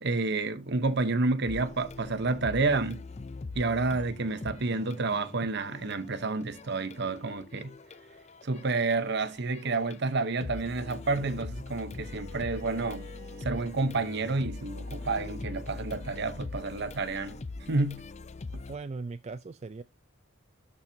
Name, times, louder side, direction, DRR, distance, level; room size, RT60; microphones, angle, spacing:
voice 1, 0.0-3.0 3.5-7.7 8.4-13.1 13.4-17.4 17.7-18.0, right 3 dB, 55° right, 0.8 m, -29 dB
sound 1, 1.5-10.0 10.3-18.8, left 3 dB, 35° left, 0.5 m, -42 dB
Bowed string instrument, 12.0-17.0, right 1 dB, 70° right, 2.9 m, -52 dB
voice 2, 18.7-19.8, right 3 dB, 30° right, 0.3 m, -38 dB
12.5 x 4.4 x 2.7 m
head